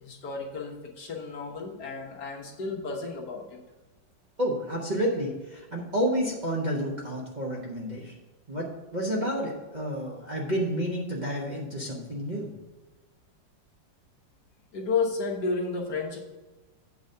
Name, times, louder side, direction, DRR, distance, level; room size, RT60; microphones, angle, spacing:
voice 1, 0.0-3.6 14.7-16.2, left 4 dB, 60° left, 0 dB, 1.7 m, -32 dB
voice 2, 4.4-8.1 8.5-8.7 8.9-12.5, equal, 30° right, -4 dB, 1.0 m, -30 dB
8.4 x 3.9 x 6.7 m, 1.2 s
omnidirectional pair, 2.0 m